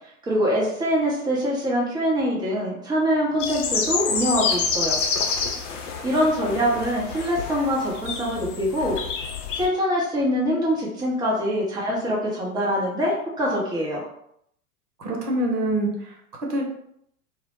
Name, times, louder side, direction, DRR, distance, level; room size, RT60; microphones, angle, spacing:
voice 1, 0.3-5.0 6.0-9.0 9.5-14.1, equal, 10° right, -4 dB, 0.5 m, -24 dB
sound 1, 3.4-9.7, left 5 dB, 55° left, 0.5 m, -28 dB
voice 2, 15.0-16.6, right 1 dB, 85° right, 0 dB, 0.8 m, -26 dB
2.1 x 2.0 x 3.0 m, 0.72 s
figure-of-eight pair, 95°, 46 cm